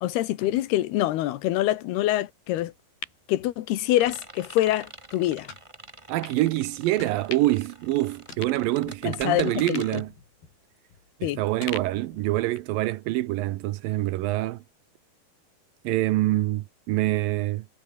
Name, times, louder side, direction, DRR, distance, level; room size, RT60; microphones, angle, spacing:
voice 1, 0.0-2.7 3.3-5.5 9.0-10.0 11.2-11.4, left 15 dB, 90° left, 3.2 m, -25 dB
sound 1, 2.6-4.2 4.6-4.7 5.5-5.7 6.2-6.4 7.0-7.7 8.0-8.1 8.3-9.2 9.6-11.2 11.6-12.8 13.1-13.2, left 5 dB, 70° left, 7.7 m, -42 dB
sound 2, 3.9-10.0, right 2 dB, 15° right, 1.1 m, -45 dB
voice 2, 6.1-10.1 11.2-14.6 15.8-17.7, right 17 dB, 80° right, 2.3 m, -25 dB
omnidirectional pair, 4.4 m